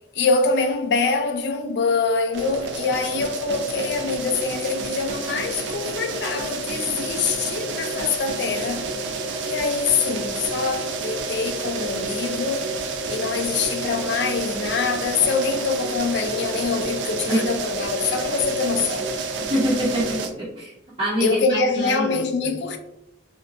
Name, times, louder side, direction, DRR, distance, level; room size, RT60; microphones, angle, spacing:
voice 1, 0.1-8.9 9.4-12.7 13.1-19.1 21.2-22.8, left 4 dB, 65° left, 0.3 m, -24 dB
sound 1, 2.3-20.3, right 3 dB, 80° right, 0.4 m, -29 dB
voice 2, 19.5-20.7 21.0-22.2, equal, 35° right, 0.8 m, -25 dB
2.6 x 2.2 x 2.5 m
head